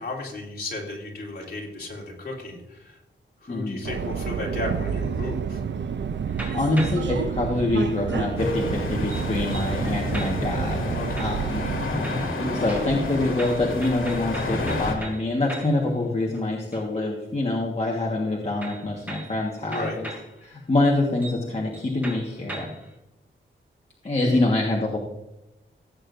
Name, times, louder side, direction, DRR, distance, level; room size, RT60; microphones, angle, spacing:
voice 1, 0.0-3.0 3.4-5.6 10.9-11.3 19.7-20.0, left 2 dB, 50° left, -4 dB, 3.7 m, -34 dB
voice 2, 3.5-3.8 6.5-11.9 12.5-20.1 20.4-22.7 24.0-25.0, left 2 dB, 30° left, -2 dB, 1.5 m, -25 dB
Subway metro underground, 3.8-11.8, right 7 dB, 60° right, 0.5 m, -29 dB
sound 1, 6.3-7.2 8.1-10.6 11.2-11.8 12.0-15.9 16.2-17.1 18.6-20.3 20.8-20.9 21.2-21.5 21.7-22.9, equal, 10° right, 2.8 m, -38 dB
sound 2, 8.4-15.0, left 2 dB, 80° left, 2.3 m, -30 dB
16.5 x 8.7 x 2.6 m, 0.91 s
wide cardioid pair, 150°, 21 cm